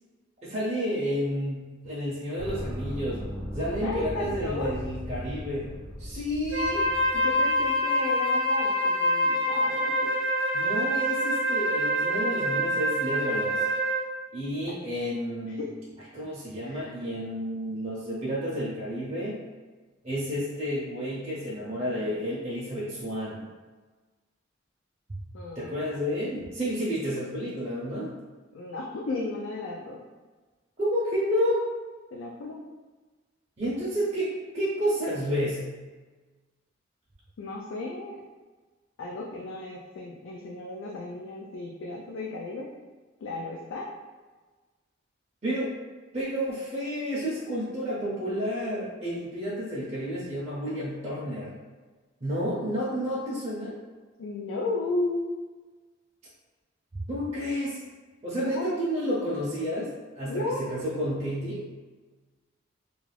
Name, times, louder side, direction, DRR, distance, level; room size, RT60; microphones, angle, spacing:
voice 1, 0.4-3.3 3.5-5.7 6.0-6.9 10.5-13.6 14.3-15.6 16.1-19.4 20.0-23.4 25.6-28.1 30.8-31.7 33.6-35.7 45.4-45.7 46.1-51.5 52.2-53.8 57.1-57.8 58.2-61.6, equal, 35° right, -8 dB, 0.5 m, -30 dB
sound 1, 2.4-7.9, equal, 55° left, 0.7 m, -38 dB
voice 2, 3.8-4.8 7.1-10.2 14.7-14.8 15.4-15.7 16.6-16.9 25.3-25.8 28.5-30.0 32.1-32.6 37.4-38.2 39.0-42.7 43.2-43.9 54.2-55.4 58.4-58.8 60.3-60.6, left 2 dB, 80° left, -2 dB, 0.4 m, -34 dB
Wind instrument woodwind instrument, 6.5-14.1, equal, 90° right, 0.5 m, -26 dB
2.3 x 2.3 x 3.2 m, 1.3 s
head